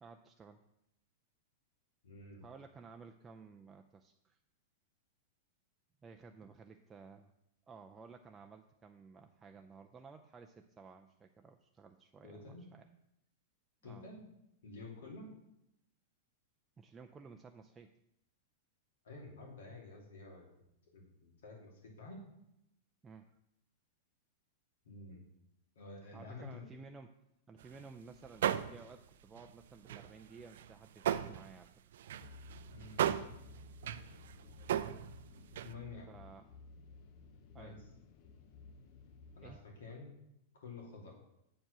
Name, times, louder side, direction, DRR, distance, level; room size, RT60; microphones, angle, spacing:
voice 1, 0.0-0.6 2.4-4.4 6.0-7.3 7.7-12.9 13.8-14.1 16.8-17.9 23.0-23.3 26.1-27.2 27.5-31.7 36.1-36.5 37.5-37.8 39.4-39.6, right 4 dB, 15° right, 4 dB, 0.4 m, -55 dB
voice 2, 2.0-2.5 12.2-12.6 13.8-14.2 14.6-15.3 19.0-20.5 20.9-22.2 24.8-25.2 25.7-26.7 32.7-33.0 35.6-36.1 37.6-37.8 39.4-40.2 40.5-41.1, left 3 dB, 80° left, 0 dB, 2.8 m, -50 dB
sound 1, 27.6-27.9 28.2-29.1 29.4-31.6 31.9-35.7, right 10 dB, 75° right, 0.4 m, -37 dB
sound 2, 32.2-39.6, left 3 dB, 50° left, 0.8 m, -55 dB
7.5 x 4.6 x 6.7 m, 0.82 s
hypercardioid pair, 130°, 0 cm